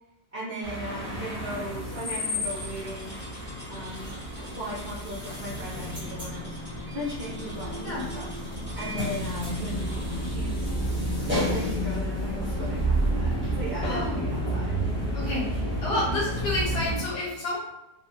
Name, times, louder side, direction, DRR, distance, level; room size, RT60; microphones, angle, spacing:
voice 1, 0.3-3.2 3.7-6.5 6.9-8.3 8.7-10.7 11.4-14.8, equal, 55° right, -8 dB, 0.7 m, -38 dB
sound 1, 0.6-17.0, equal, 15° right, 0.4 m, -30 dB
sound 2, 2.5-10.3, equal, 5° left, 1.3 m, -47 dB
voice 2, 13.8-14.2 15.1-17.6, left 1 dB, 75° left, -6 dB, 1.7 m, -30 dB
2.7 x 2.7 x 2.6 m, 0.91 s
omnidirectional pair, 1.7 m